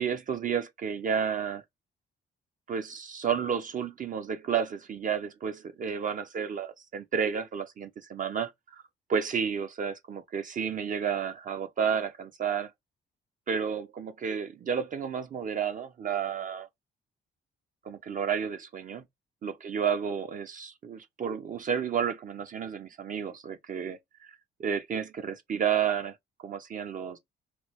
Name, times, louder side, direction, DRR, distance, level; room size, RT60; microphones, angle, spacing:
voice 1, 0.0-1.6 2.7-8.5 9.1-12.7 13.5-16.7 17.8-19.0 19.4-24.3 24.6-27.2, right 7 dB, 40° right, 0.4 m, -31 dB
3.0 x 2.2 x 3.0 m
cardioid pair, 90°, 20 cm